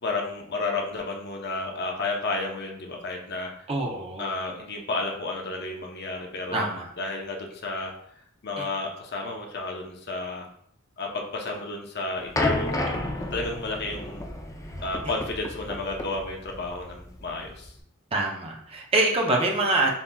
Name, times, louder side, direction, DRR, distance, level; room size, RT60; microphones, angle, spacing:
voice 1, 0.0-3.5 4.2-6.7 7.0-7.9 8.4-10.5 11.0-12.9 13.3-14.2 14.8-17.7, left 3 dB, 50° left, 1 dB, 0.8 m, -32 dB
voice 2, 3.7-4.3 6.5-6.9 8.6-8.7 18.1-19.9, right 2 dB, 30° right, 0 dB, 0.6 m, -25 dB
sound 1, 12.4-17.8, left 1 dB, 15° left, 0.4 m, -31 dB
7.1 x 2.9 x 2.3 m, 0.68 s
head